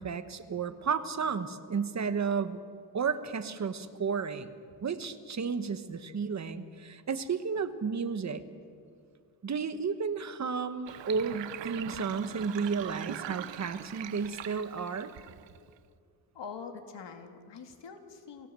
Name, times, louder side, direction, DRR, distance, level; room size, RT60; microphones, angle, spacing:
voice 1, 0.0-2.6 2.9-4.5 4.8-8.4 9.4-15.1, right 5 dB, 40° right, 10 dB, 1.2 m, -32 dB
Sink (filling or washing), 10.9-15.8, right 12 dB, 75° right, 0.8 m, -42 dB
voice 2, 16.3-18.5, left 5 dB, 70° left, 5 dB, 2.4 m, -44 dB
29.5 x 17.0 x 7.6 m, 2.2 s
wide cardioid pair, 170°, 44 cm